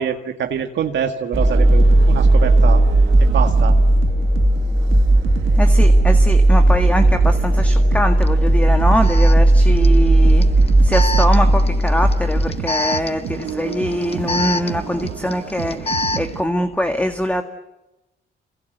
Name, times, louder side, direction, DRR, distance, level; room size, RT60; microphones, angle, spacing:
voice 1, 0.0-2.8 3.2-3.8, right 7 dB, 65° right, 4 dB, 2.0 m, -26 dB
sound 1, 1.3-12.5, right 1 dB, 10° right, 2.4 m, -14 dB
sound 2, 1.3-16.4, right 11 dB, 90° right, 1.7 m, -31 dB
voice 2, 5.6-10.5 10.8-17.4, equal, 5° left, 6 dB, 1.9 m, -23 dB
Alarm, 8.2-8.3 9.0-16.4, left 3 dB, 30° left, 1.1 m, -28 dB
27.5 x 26.0 x 8.1 m, 0.99 s
cardioid pair, 90°, 20 cm